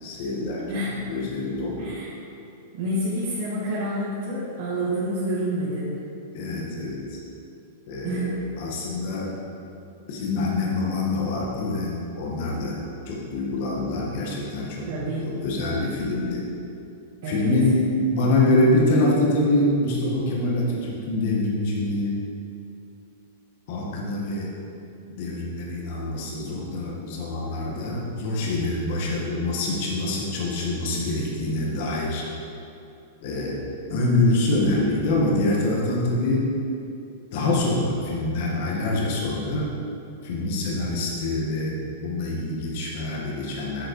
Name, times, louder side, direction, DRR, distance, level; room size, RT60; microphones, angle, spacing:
voice 1, 0.0-1.8 6.3-7.2 7.9-9.4 10.1-12.8 13.1-14.9 15.2-16.4 17.3-22.2 23.7-24.5 25.2-32.2 33.2-33.6 33.9-36.5 37.3-39.7 40.2-43.9, left 2 dB, 50° left, -3 dB, 1.8 m, -25 dB
voice 2, 1.8-2.1 2.7-5.9 8.0-8.3 14.9-15.3 17.2-17.5, right 1 dB, 55° right, -10 dB, 2.2 m, -28 dB
8.6 x 6.4 x 4.9 m, 2.6 s
supercardioid pair, 160°, 0 cm